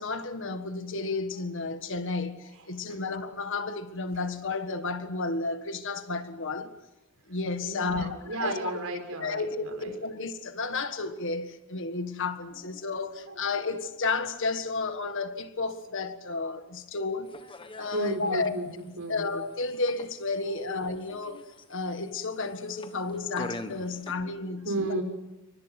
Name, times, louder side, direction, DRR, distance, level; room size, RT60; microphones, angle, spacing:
voice 1, 0.0-6.7 7.3-8.6 9.2-17.3 17.8-18.6 19.1-21.4 21.7-25.0, left 3 dB, 60° left, 1.6 m, -32 dB
voice 2, 7.6-10.0 13.3-13.4 17.9-19.3 20.5-20.6 23.9-24.0 24.4-25.0, right 2 dB, 75° right, 5.7 m, -34 dB
sound 1, 17.2-24.1, left 2 dB, 25° left, 1.4 m, -45 dB
29.0 x 25.0 x 6.0 m
head